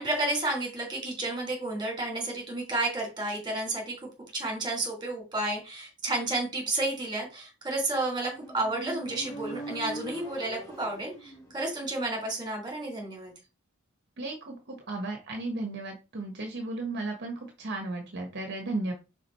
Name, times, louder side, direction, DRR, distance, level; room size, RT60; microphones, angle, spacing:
voice 1, 0.0-4.0 4.3-13.3, right 2 dB, 20° right, 0 dB, 3.0 m, -31 dB
Motorcycle, 8.1-11.7, equal, 15° left, 1.8 m, -41 dB
voice 2, 14.2-18.9, right 2 dB, 55° right, 2 dB, 1.3 m, -35 dB
5.1 x 5.0 x 4.3 m, 0.30 s
head